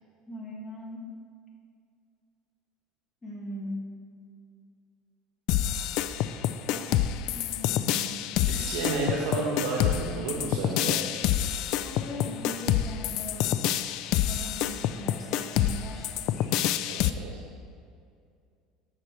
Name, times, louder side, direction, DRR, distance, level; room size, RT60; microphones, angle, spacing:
voice 1, 0.3-1.1 3.2-3.9 6.7-8.2 10.6-10.7 11.8-13.6 14.1-16.5, left 1 dB, 15° left, -3 dB, 1.7 m, -40 dB
sound 1, 5.5-17.1, left 11 dB, 65° left, 0.3 m, -27 dB
voice 2, 8.4-11.0 16.9-17.4, right 3 dB, 85° right, -2 dB, 1.0 m, -31 dB
6.8 x 6.5 x 4.5 m, 2.3 s
supercardioid pair, 125°, 0 cm